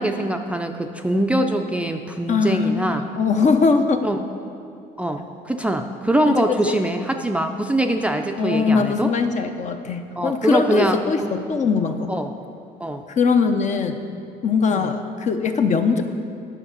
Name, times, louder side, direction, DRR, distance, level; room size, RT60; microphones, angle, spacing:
voice 1, 0.0-3.0 4.0-4.2 5.0-9.1 10.2-11.3 12.1-12.3 12.8-13.0 14.7-14.8, right 1 dB, 5° right, 4 dB, 0.5 m, -23 dB
voice 2, 2.3-4.1 6.3-6.8 8.4-12.1 13.1-14.0 14.4-16.0, left 5 dB, 45° left, 7 dB, 0.8 m, -21 dB
9.9 x 6.3 x 6.6 m, 2.5 s
cardioid pair, 110°, 17 cm